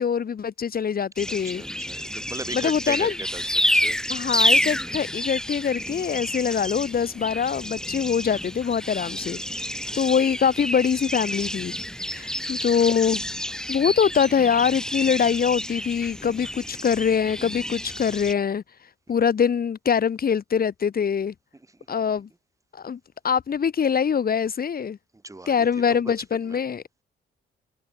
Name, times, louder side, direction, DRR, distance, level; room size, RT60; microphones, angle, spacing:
voice 1, 0.0-1.6 2.5-3.1 4.1-9.7 9.9-11.7 12.1-13.2 13.7-18.6 19.1-21.3 21.9-22.3 22.7-23.0 23.2-25.0 25.5-27.0, left 7 dB, 50° left, 5.2 m, -23 dB
sound 1, 1.2-18.3, equal, 5° left, 5.4 m, -29 dB
voice 2, 1.3-4.0 6.5-6.7 9.0-9.3 9.7-10.1 12.0-12.3 21.5-21.9 25.1-26.1 26.4-26.6, right 2 dB, 15° right, 6.3 m, -39 dB
cardioid pair, 90°, 20 cm